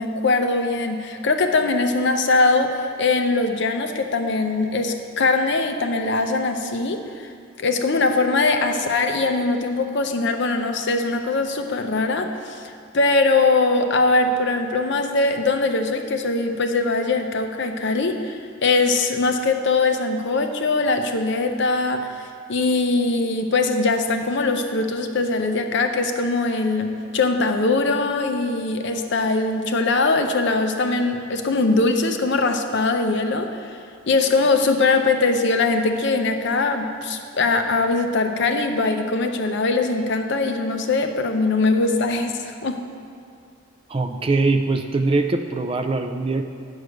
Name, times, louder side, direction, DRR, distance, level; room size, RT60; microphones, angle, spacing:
voice 1, 0.0-7.3 7.6-22.1 22.5-33.8 34.1-42.8, left 3 dB, 60° left, 6 dB, 0.6 m, -21 dB
voice 2, 43.9-46.4, right 3 dB, 25° right, 6 dB, 0.3 m, -22 dB
9.1 x 4.8 x 6.5 m, 2.3 s
head